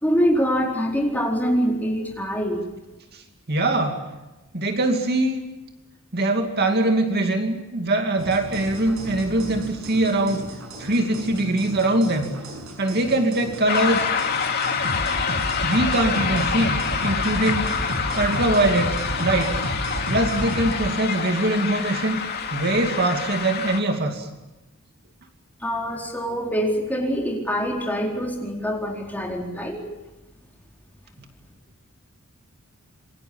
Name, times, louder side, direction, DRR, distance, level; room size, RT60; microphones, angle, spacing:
voice 1, 0.0-2.6 25.6-29.8, equal, 10° left, 0 dB, 4.4 m, -24 dB
voice 2, 3.5-4.1 4.5-5.4 6.1-10.4 10.8-12.3 12.8-14.1 15.6-17.7 18.2-19.6 20.1-22.2 22.5-24.3, right 2 dB, 45° right, 4 dB, 2.6 m, -22 dB
sound 1, 8.2-20.7, equal, 70° right, 6.9 m, -32 dB
sound 2, 13.7-23.8, left 6 dB, 45° left, 2.7 m, -27 dB
27.0 x 23.5 x 7.1 m, 1.1 s
head